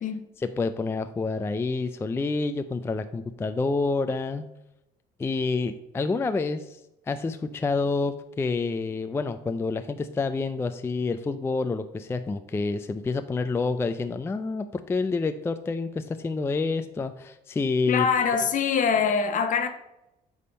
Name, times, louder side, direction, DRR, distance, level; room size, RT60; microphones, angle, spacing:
voice 1, 0.4-4.4 5.2-6.8 7.1-18.1, left 3 dB, 15° left, 0.3 m, -28 dB
voice 2, 17.9-19.7, left 6 dB, 50° left, 0.7 m, -24 dB
8.4 x 3.6 x 5.2 m
cardioid pair, 110°, 17 cm